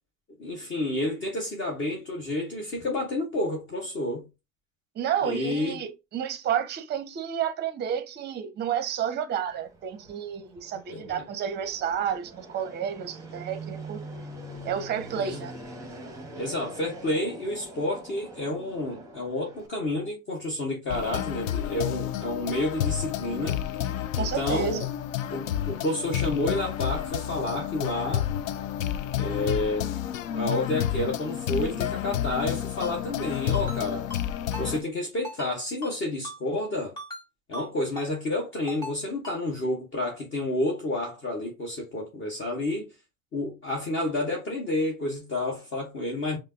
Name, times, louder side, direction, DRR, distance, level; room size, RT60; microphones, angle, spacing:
voice 1, 0.4-4.3 5.2-5.8 10.9-11.2 15.1-15.5 16.4-23.6 24.1-24.8 25.3-28.3 29.2-29.9 30.3-34.1 34.6-36.9 37.5-42.9 43.3-46.4, left 2 dB, 30° left, 1.1 m, -30 dB
voice 2, 5.0-14.0 14.6-15.5 24.2-24.9, right 9 dB, 25° right, 0.7 m, -30 dB
Fixed-wing aircraft airplane, 9.5-19.7, right 1 dB, 10° right, 1.0 m, -43 dB
sound 1, 20.9-34.8, left 11 dB, 80° left, 0.5 m, -30 dB
Ringtone, 32.8-32.9 33.5-33.8 34.1-34.2 34.5-34.7 35.2-35.5 35.8-35.9 36.2-36.4 37.0-37.2 37.5-37.7 38.0-38.1 38.7-38.9 39.2-39.4, left 1 dB, 10° left, 2.1 m, -39 dB
5.4 x 2.0 x 2.6 m
hypercardioid pair, 95°, 39 cm